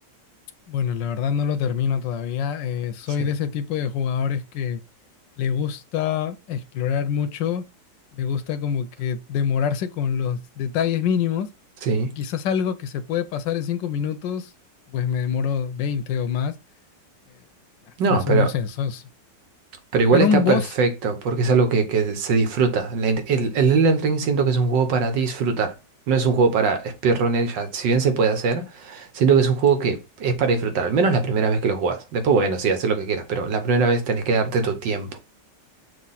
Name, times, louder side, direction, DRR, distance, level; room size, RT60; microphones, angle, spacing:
voice 1, 0.7-4.8 5.4-7.7 8.1-11.5 12.2-14.5 14.9-16.6 18.1-19.0 20.1-20.7, left 7 dB, 90° left, 1.4 m, -25 dB
voice 2, 11.8-12.1 18.0-18.5 19.9-25.8 26.1-35.2, right 4 dB, 85° right, 1.8 m, -21 dB
6.4 x 2.8 x 5.6 m
omnidirectional pair, 1.9 m